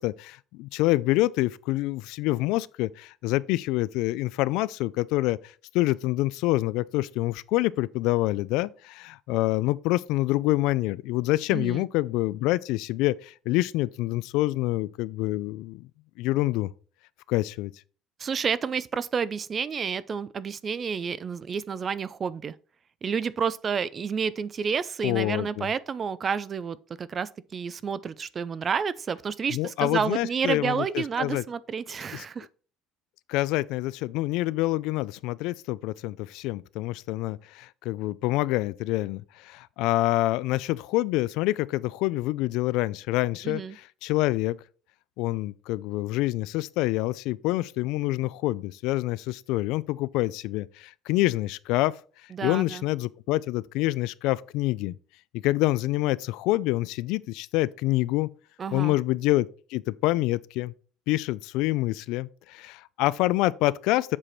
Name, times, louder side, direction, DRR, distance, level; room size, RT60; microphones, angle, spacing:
voice 1, 0.0-5.4 5.7-15.9 16.2-16.7 17.3-17.7 25.0-25.7 29.5-31.4 32.1-32.2 33.3-44.6 45.2-51.9 52.4-55.0 55.3-58.3 58.7-60.7 61.1-64.2, left 18 dB, 75° left, 0.3 m, -26 dB
voice 2, 11.5-11.9 18.2-22.5 23.0-32.5 43.4-43.8 52.3-52.8 58.6-59.0, right 6 dB, 25° right, 0.3 m, -30 dB
7.4 x 4.9 x 4.4 m
cardioid pair, 175°, 0 cm